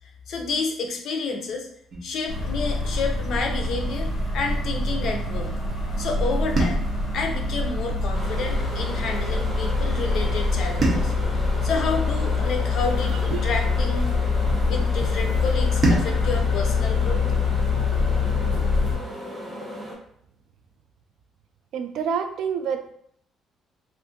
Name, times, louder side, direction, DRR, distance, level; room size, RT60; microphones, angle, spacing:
voice 1, 0.3-1.7 2.0-5.5 6.0-6.9 7.1-11.1 11.6-14.1 14.7-17.2, left 4 dB, 55° left, 3 dB, 0.6 m, -30 dB
sound 1, 2.3-19.0, left 3 dB, 20° left, 1.0 m, -24 dB
sound 2, 6.6-8.9 10.8-13.3 15.8-18.4, right 2 dB, 35° right, 0.7 m, -31 dB
sound 3, 8.1-19.9, equal, 10° right, 1.0 m, -36 dB
voice 2, 21.7-22.9, right 7 dB, 65° right, 7 dB, 0.3 m, -28 dB
2.5 x 2.5 x 3.7 m, 0.68 s
cardioid pair, 150°, 0 cm